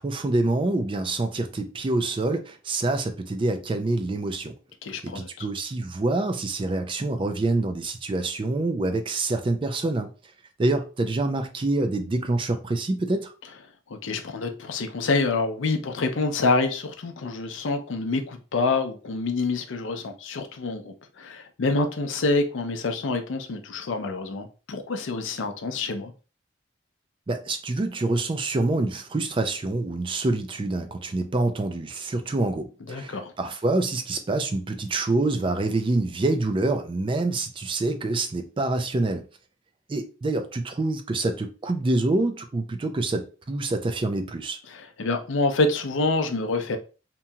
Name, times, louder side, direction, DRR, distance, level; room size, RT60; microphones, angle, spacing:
voice 1, 0.0-4.5 5.0-10.1 10.6-13.3 27.3-39.2 39.9-44.6, right 2 dB, 25° right, 0.3 m, -26 dB
voice 2, 4.8-5.5 13.9-26.1 32.9-33.3 44.7-46.8, left 3 dB, 85° left, 0.5 m, -27 dB
2.9 x 2.7 x 2.3 m
head